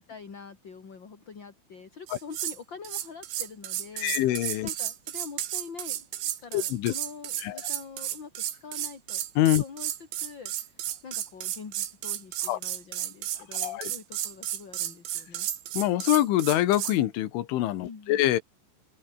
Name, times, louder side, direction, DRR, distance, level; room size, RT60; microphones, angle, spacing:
voice 1, 0.0-9.3 9.6-15.5 17.8-18.2, left 5 dB, 30° left, 2.5 m, -45 dB
sound 1, 2.1-2.6 2.8-17.0, right 12 dB, 70° right, 4.2 m, -33 dB
voice 2, 4.0-4.7 6.5-6.9 7.4-7.6 9.4-9.6 12.5-12.6 13.6-13.9 15.7-18.4, left 14 dB, 75° left, 4.0 m, -25 dB
omnidirectional pair, 5.7 m